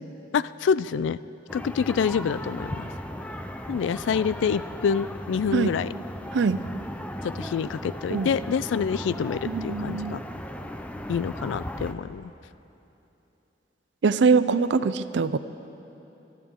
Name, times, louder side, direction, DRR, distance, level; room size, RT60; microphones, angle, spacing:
voice 1, 0.3-1.2 1.5-2.9 3.7-5.9 7.2-10.2 11.1-12.3, left 6 dB, 80° left, 17 dB, 0.3 m, -27 dB
sound 1, 1.5-11.9, equal, 5° left, 0.5 m, -36 dB
voice 2, 9.5-10.2 14.0-15.4, right 5 dB, 70° right, 14 dB, 0.4 m, -23 dB
24.0 x 12.0 x 3.7 m, 3.0 s
head